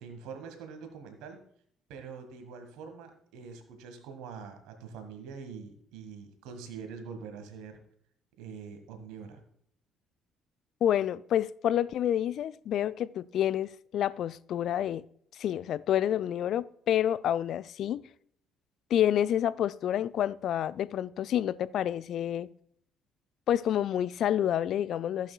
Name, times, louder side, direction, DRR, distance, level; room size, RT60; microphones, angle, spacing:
voice 1, 0.0-1.4 1.9-7.8 8.4-9.4, right 6 dB, 60° right, 1.7 m, -44 dB
voice 2, 10.8-15.0 15.4-18.1 18.9-22.5 23.5-25.3, left 10 dB, 50° left, 0.3 m, -28 dB
15.5 x 8.2 x 2.3 m
figure-of-eight pair, 45°, 0 cm